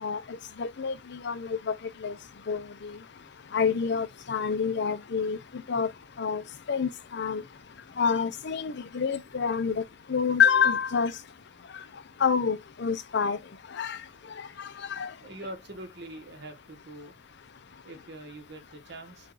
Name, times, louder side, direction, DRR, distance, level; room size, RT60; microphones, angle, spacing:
voice 1, 0.0-1.7 2.0-2.1 2.5-3.0 3.5-5.4 5.7-5.9 6.2-6.4 6.7-7.4 8.0-9.8 10.1-11.1 12.2-13.4 13.7-14.0 14.6-15.1, left 6 dB, 65° left, 0.6 m, -27 dB
voice 2, 15.2-17.1 17.8-19.3, right 1 dB, 60° right, 1.3 m, -43 dB
5.4 x 2.4 x 3.9 m
head